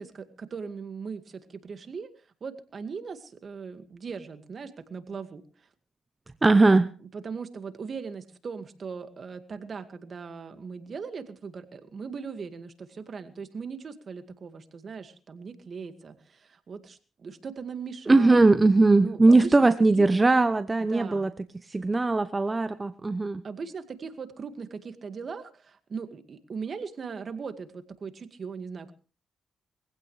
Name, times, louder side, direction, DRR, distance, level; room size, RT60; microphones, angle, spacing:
voice 1, 0.0-2.1 2.4-5.7 7.0-18.4 19.0-20.1 20.9-21.3 23.4-28.9, right 5 dB, 50° right, 9 dB, 2.0 m, -39 dB
voice 2, 6.4-6.9 18.1-21.3 21.7-23.4, right 3 dB, 25° right, 12 dB, 0.8 m, -20 dB
22.0 x 16.0 x 3.3 m, 0.37 s
cardioid pair, 70°, 0 cm